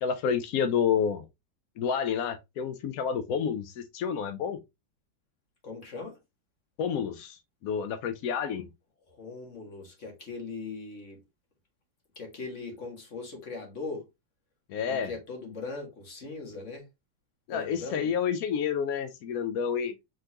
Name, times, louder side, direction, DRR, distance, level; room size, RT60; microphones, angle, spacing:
voice 1, 0.0-1.3 1.8-4.6 6.8-8.7 14.7-15.1 17.5-19.9, left 7 dB, 75° left, 0.8 m, -29 dB
voice 2, 5.6-6.2 9.1-11.2 12.2-14.1 14.8-16.9 17.5-18.1, left 3 dB, 40° left, 1.9 m, -40 dB
4.4 x 3.8 x 2.9 m
omnidirectional pair, 2.0 m